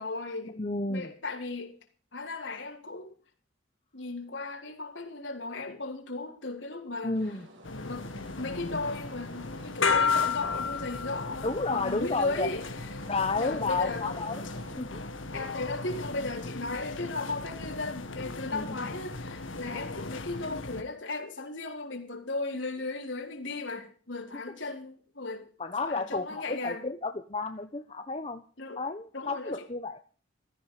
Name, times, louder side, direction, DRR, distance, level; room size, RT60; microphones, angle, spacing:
voice 1, 0.0-0.6 0.9-1.8 2.1-3.1 3.9-7.4 7.8-8.1 8.4-13.1 13.4-14.1 15.3-25.5 25.8-26.9 28.6-28.8 29.1-29.7, left 3 dB, 70° left, 4.2 m, -36 dB
voice 2, 0.6-1.1 7.0-7.5 11.4-12.5 13.1-15.0 15.3-15.5 18.5-18.8 25.6-28.4 28.8-30.0, left 3 dB, 30° left, 1.1 m, -32 dB
sound 1, 7.1-14.7, right 1 dB, 75° right, 6.1 m, -52 dB
sound 2, 7.6-20.8, left 4 dB, 85° left, 1.9 m, -34 dB
16.0 x 14.5 x 5.0 m
head